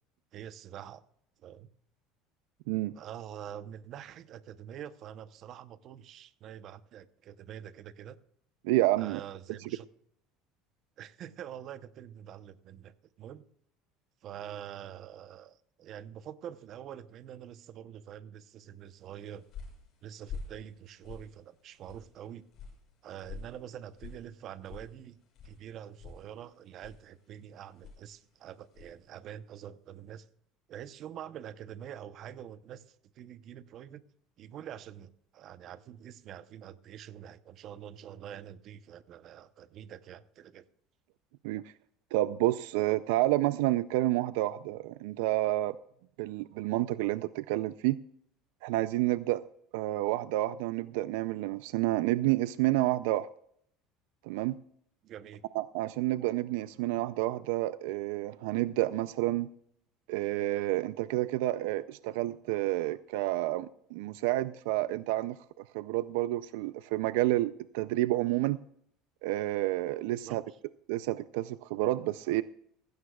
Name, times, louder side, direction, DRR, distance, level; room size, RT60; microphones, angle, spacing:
voice 1, 0.3-1.0 1.4-1.7 2.9-8.2 9.0-9.9 11.0-13.4 14.2-19.5 20.0-22.4 23.0-25.2 25.4-30.3 30.7-34.0 34.4-40.6 55.0-55.4 70.1-70.6, right 10 dB, 45° right, 0.8 m, -46 dB
voice 2, 8.6-9.2 41.4-41.6 42.1-45.8 46.2-48.0 48.6-49.4 49.7-53.3 54.2-54.6 55.5-59.5 60.1-65.4 65.7-68.6 69.2-70.4 70.9-72.4, right 16 dB, 85° right, 0.4 m, -29 dB
sound 1, 19.0-29.1, left 5 dB, 45° left, 6.6 m, -49 dB
16.5 x 16.0 x 2.3 m
cardioid pair, 140°, 0 cm